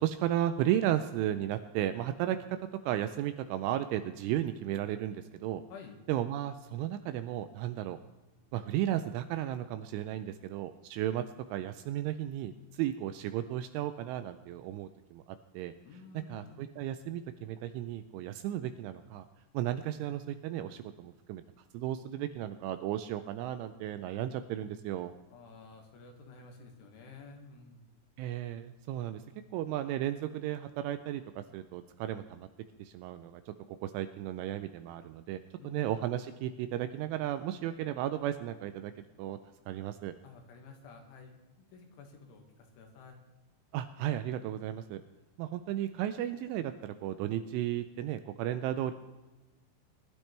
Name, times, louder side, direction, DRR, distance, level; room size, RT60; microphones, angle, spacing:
voice 1, 0.0-2.6 2.8-5.6 6.1-8.0 8.5-15.2 15.5-15.7 16.1-19.3 19.5-21.4 21.7-25.1 28.2-29.2 29.5-32.5 32.8-38.9 39.2-39.4 39.7-40.1 43.7-45.0 45.4-48.9, right 12 dB, 85° right, 10 dB, 2.8 m, -34 dB
voice 2, 15.8-16.7 25.3-27.9 35.6-35.8 40.2-43.2, left 4 dB, 70° left, 3 dB, 3.9 m, -52 dB
21.0 x 12.0 x 3.3 m, 1.2 s
omnidirectional pair, 5.9 m